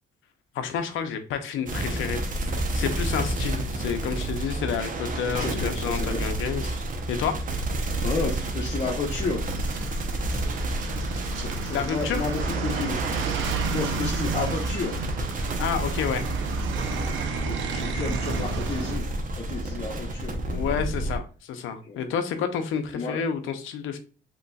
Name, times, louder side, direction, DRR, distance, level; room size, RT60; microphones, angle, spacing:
voice 1, 0.5-6.8 7.1-7.4 11.7-12.3 15.4-16.2 20.5-24.0, left 7 dB, 80° left, 8 dB, 0.6 m, -30 dB
sound 1, 1.7-21.2, right 1 dB, 40° right, 0.8 m, -31 dB
sound 2, 2.4-18.4, right 2 dB, 10° left, 1.4 m, -35 dB
sound 3, 2.5-19.0, right 6 dB, 80° right, 0.6 m, -35 dB
voice 2, 5.3-6.3 8.0-9.4 11.3-13.1 13.7-15.0 17.5-19.1 19.4-20.4 21.8-22.5 22.9-23.3, left 4 dB, 35° left, -2 dB, 0.9 m, -32 dB
3.9 x 2.9 x 2.3 m, 0.37 s
cardioid pair, 90°, 20 cm